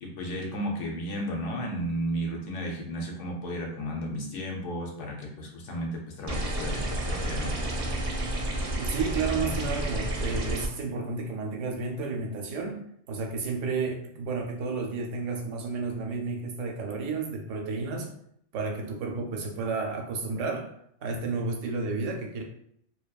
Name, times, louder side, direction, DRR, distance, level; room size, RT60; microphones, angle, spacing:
voice 1, 0.0-7.6, equal, 80° left, 0 dB, 1.0 m, -33 dB
sound 1, 6.3-10.7, right 1 dB, 60° right, 0.7 m, -30 dB
voice 2, 8.8-12.8 13.1-18.1 18.5-20.7 21.0-22.4, right 4 dB, 85° right, 2 dB, 0.9 m, -31 dB
2.8 x 2.2 x 2.2 m, 0.71 s
omnidirectional pair, 1.2 m